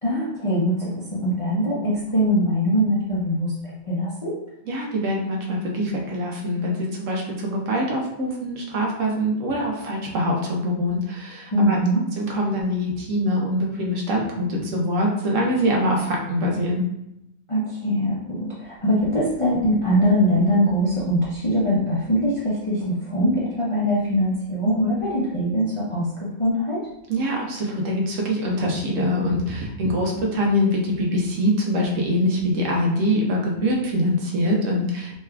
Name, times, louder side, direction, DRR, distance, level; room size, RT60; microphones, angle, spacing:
voice 1, 0.0-4.4 11.5-12.0 17.5-26.8, equal, 30° left, -8 dB, 0.6 m, -22 dB
voice 2, 4.7-11.8 12.2-16.8 27.1-35.1, equal, 70° right, -1 dB, 1.0 m, -24 dB
3.4 x 3.2 x 2.2 m, 0.85 s
omnidirectional pair, 1.4 m